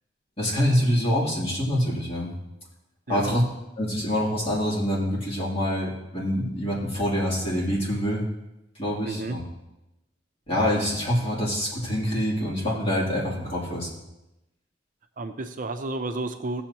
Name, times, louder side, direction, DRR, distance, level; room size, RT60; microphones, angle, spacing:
voice 1, 0.4-2.3 3.1-3.4 3.8-8.2 8.8-9.4 10.5-13.9, equal, 35° left, -5 dB, 3.0 m, -25 dB
voice 2, 9.0-9.4 15.2-16.6, right 2 dB, 50° right, 7 dB, 0.6 m, -31 dB
16.0 x 7.0 x 2.9 m, 0.94 s
head